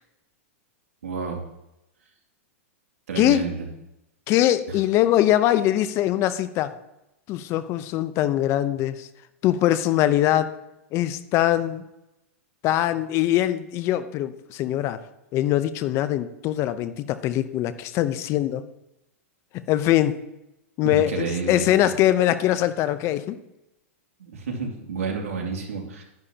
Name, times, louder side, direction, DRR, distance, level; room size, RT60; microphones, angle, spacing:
voice 1, 1.0-1.5 3.1-3.7 4.7-4.8 20.8-21.7 24.2-26.0, right 5 dB, 90° right, 0 dB, 2.6 m, -30 dB
voice 2, 3.2-3.5 4.3-6.8 7.3-9.1 9.4-10.6 10.9-11.8 12.6-15.0 15.3-18.6 19.5-20.2 20.8-23.4, left 13 dB, 35° left, 14 dB, 0.7 m, -22 dB
12.0 x 10.5 x 2.9 m, 0.90 s
hypercardioid pair, 130°, 8 cm